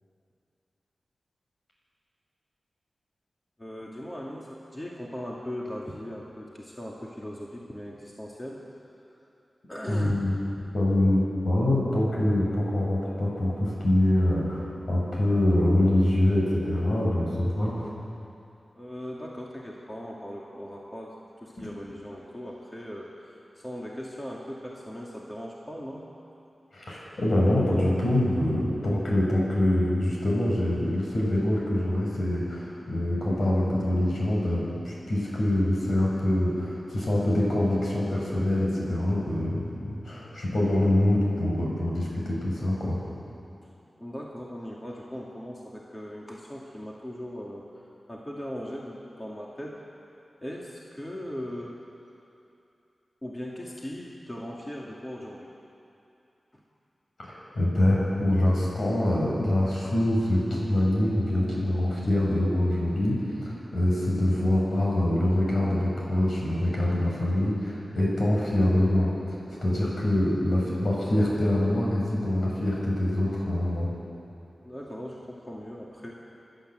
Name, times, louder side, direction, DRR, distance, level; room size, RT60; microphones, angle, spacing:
voice 1, 3.6-8.6 9.7-10.1 10.6-10.7 18.7-26.1 44.0-49.8 50.4-51.7 53.2-55.5 56.5-56.6 69.5-69.8 74.6-76.1, equal, 20° left, -4 dB, 2.3 m, -39 dB
voice 2, 9.9-10.3 10.7-11.2 11.4-17.9 21.6-21.7 26.7-43.0 57.3-69.3 69.6-73.9, left 1 dB, 70° left, -4 dB, 6.6 m, -25 dB
28.0 x 12.0 x 7.8 m, 2.7 s
wide cardioid pair, 100°, 0 cm